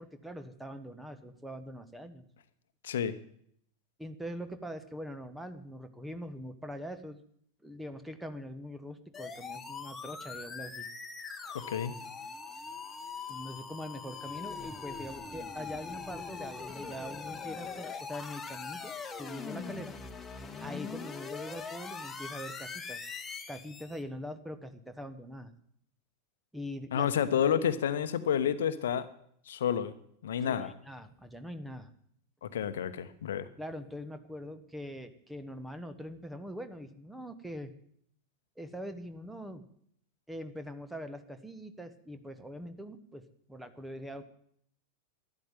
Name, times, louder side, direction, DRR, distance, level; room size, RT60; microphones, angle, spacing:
voice 1, 0.0-2.3 4.0-7.2 7.6-10.9 13.3-20.0 20.6-23.0 23.5-25.5 26.5-27.1 30.4-31.9 33.6-37.7 38.6-39.6 40.3-43.2 43.5-44.2, equal, 5° right, 10 dB, 1.3 m, -43 dB
sound 1, 9.1-24.0, left 5 dB, 15° left, 1.5 m, -42 dB
voice 2, 11.5-11.9 26.9-29.1 29.5-29.9 30.2-30.7 32.4-33.5, left 8 dB, 60° left, 12 dB, 1.0 m, -30 dB
13.0 x 11.0 x 9.2 m, 0.67 s
figure-of-eight pair, 90°, 0 cm